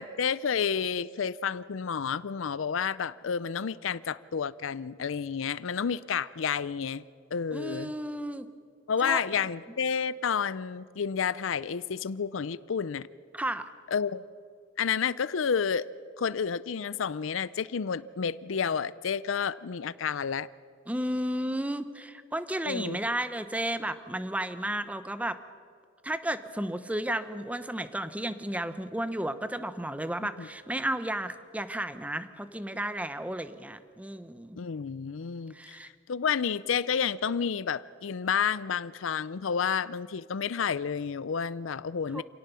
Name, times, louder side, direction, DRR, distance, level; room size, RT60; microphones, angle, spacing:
voice 1, 0.0-7.0 7.3-7.9 8.9-13.1 13.9-14.2 14.8-15.9 16.2-20.5 22.6-23.0 30.4-30.5 34.6-35.8 36.1-42.2, left 6 dB, 85° left, 18 dB, 0.5 m, -30 dB
voice 2, 7.5-8.5 9.0-9.4 13.3-13.7 20.9-25.4 26.0-34.6 35.5-35.9 42.1-42.2, right 1 dB, 5° right, 12 dB, 0.8 m, -33 dB
26.5 x 18.0 x 6.9 m, 2.2 s
head